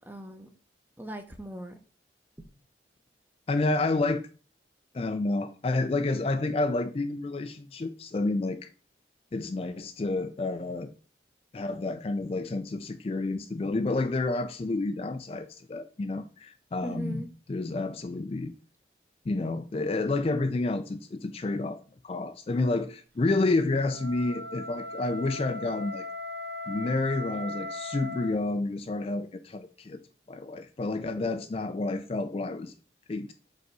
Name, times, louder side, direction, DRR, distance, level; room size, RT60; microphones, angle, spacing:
voice 1, 0.1-0.5 1.0-1.8 2.4-2.5 16.8-17.3 31.2-31.4, right 1 dB, 10° right, 0.6 m, -39 dB
voice 2, 3.5-4.3 4.9-8.7 9.3-10.9 11.5-18.5 19.3-26.0 26.7-30.0 30.3-32.7 33.1-33.3, left 2 dB, 30° left, 0.3 m, -29 dB
Wind instrument woodwind instrument, 23.8-28.4, left 1 dB, 60° right, 0.5 m, -38 dB
5.3 x 3.9 x 4.5 m
head